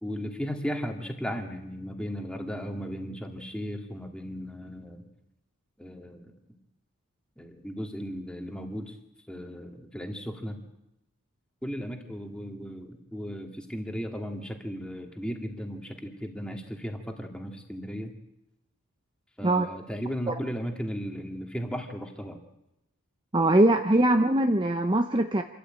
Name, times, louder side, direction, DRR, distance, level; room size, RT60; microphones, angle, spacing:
voice 1, 0.0-5.0 5.8-6.3 7.4-9.0 9.3-10.6 11.6-18.1 19.4-22.4, equal, 5° left, 3 dB, 2.2 m, -36 dB
voice 2, 23.3-25.4, right 1 dB, 20° right, 7 dB, 0.7 m, -22 dB
27.0 x 13.5 x 8.9 m, 0.89 s
head